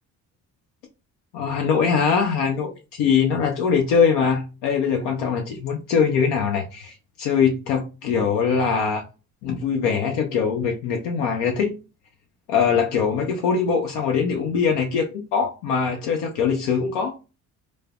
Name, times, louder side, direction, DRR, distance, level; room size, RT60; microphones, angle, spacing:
voice 1, 1.3-9.0 9.4-11.7 12.5-17.2, left 6 dB, 80° left, 0.6 m, -22 dB
3.1 x 2.0 x 2.3 m
hypercardioid pair, 50°, 42 cm